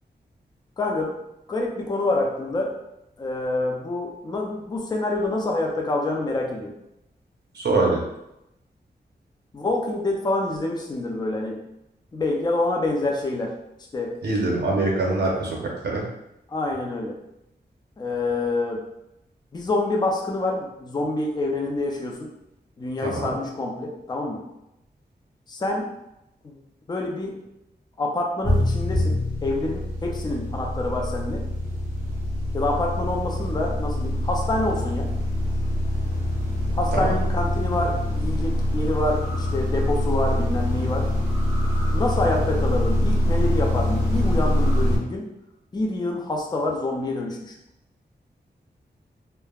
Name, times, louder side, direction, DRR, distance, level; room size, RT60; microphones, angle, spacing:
voice 1, 0.8-1.2 1.5-2.7 3.2-6.7 9.5-11.6 12.1-13.5 13.9-14.2 16.5-17.2 18.0-18.8 19.5-22.3 22.8-24.4 25.5-25.9 26.4-26.6 26.9-27.3 28.0-31.4 32.5-35.1 36.7-41.1 41.9-45.3 45.7-47.6, left 2 dB, 25° left, 0 dB, 0.4 m, -27 dB
voice 2, 7.5-8.0 14.2-15.6 15.8-16.0 23.0-23.3 36.9-37.1, right 2 dB, 80° right, -2 dB, 0.7 m, -23 dB
sound 1, 28.4-45.0, left 1 dB, 15° right, 0.9 m, -24 dB
3.3 x 2.0 x 2.3 m, 0.86 s
wide cardioid pair, 125°, 17 cm